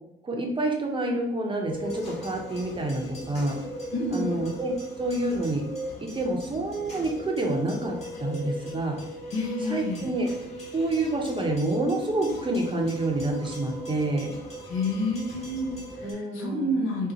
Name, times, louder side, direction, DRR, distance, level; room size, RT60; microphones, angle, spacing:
voice 1, 0.2-3.6 4.1-5.6 6.0-9.0 9.7-10.3 10.7-14.3 16.0-16.7, right 2 dB, 25° right, 1 dB, 0.7 m, -28 dB
sound 1, 1.7-16.1, equal, 30° left, 1.2 m, -38 dB
voice 2, 3.9-4.4 9.3-10.1 14.7-17.1, left 1 dB, 85° left, -1 dB, 0.8 m, -29 dB
2.7 x 2.0 x 3.8 m, 0.87 s
cardioid pair, 90°, 20 cm